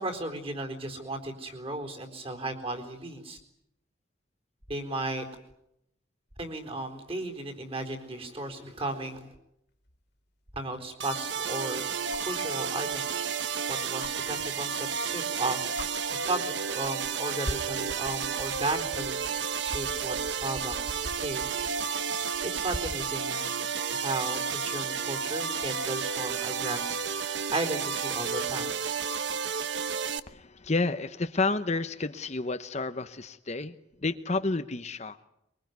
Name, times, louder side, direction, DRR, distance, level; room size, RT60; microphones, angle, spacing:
voice 1, 0.0-3.4 4.7-5.3 6.4-9.3 10.5-11.8 12.2-21.4 22.2-23.5 23.9-28.7, right 2 dB, 30° right, 7 dB, 4.1 m, -35 dB
sound 1, 9.9-10.0 12.1-12.4 14.0-14.1 15.3-15.4 15.7-15.9 16.8-17.1 17.4-23.1 24.8-24.9, left 1 dB, 55° left, 2.6 m, -41 dB
sound 2, 11.0-30.2, right 6 dB, 60° right, 1.0 m, -32 dB
voice 2, 30.3-33.7 34.0-35.2, left 3 dB, 35° left, 9 dB, 0.9 m, -30 dB
23.5 x 23.0 x 9.4 m, 0.80 s
head